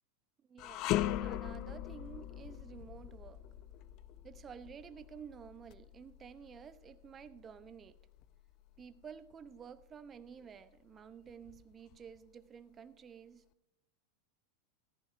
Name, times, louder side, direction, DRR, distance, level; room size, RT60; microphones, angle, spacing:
voice 1, 0.5-3.4 4.2-8.0 8.8-13.5, right 7 dB, 30° right, 0.7 m, -52 dB
sound 1, 0.6-9.8 10.2-10.4 11.3-12.2, left 14 dB, 50° left, 0.4 m, -40 dB
14.5 x 14.0 x 2.6 m
hypercardioid pair, 100°, 0 cm